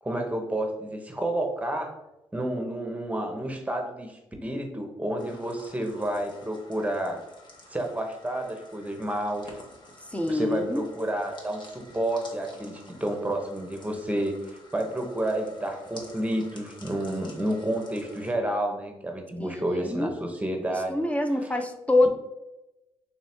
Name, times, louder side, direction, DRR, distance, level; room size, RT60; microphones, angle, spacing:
voice 1, 0.0-1.9 2.3-7.2 7.7-9.5 10.3-21.0 21.4-21.5, right 1 dB, 10° right, 3 dB, 0.9 m, -30 dB
sound 1, 5.2-18.3, left 2 dB, 40° left, 1.1 m, -51 dB
voice 2, 10.1-10.8 19.4-20.1 20.9-22.1, left 2 dB, 10° left, 5 dB, 0.6 m, -25 dB
3.4 x 3.1 x 4.3 m, 0.93 s
supercardioid pair, 65°, 12 cm